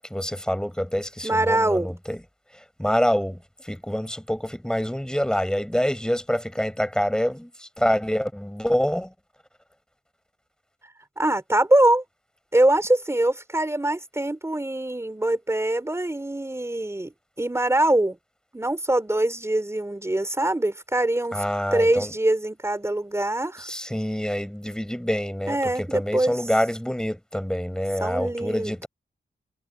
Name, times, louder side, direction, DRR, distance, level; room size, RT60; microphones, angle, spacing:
voice 1, 0.1-2.2 2.8-9.1 21.3-22.1 23.6-28.9, equal, 5° left, 4.7 m, -26 dB
voice 2, 1.2-1.9 11.2-12.0 12.5-17.1 17.4-18.2 18.5-21.4 21.7-23.7 25.5-26.4 28.0-28.9, right 1 dB, 15° right, 4.3 m, -23 dB
wide cardioid pair, 90°, 18 cm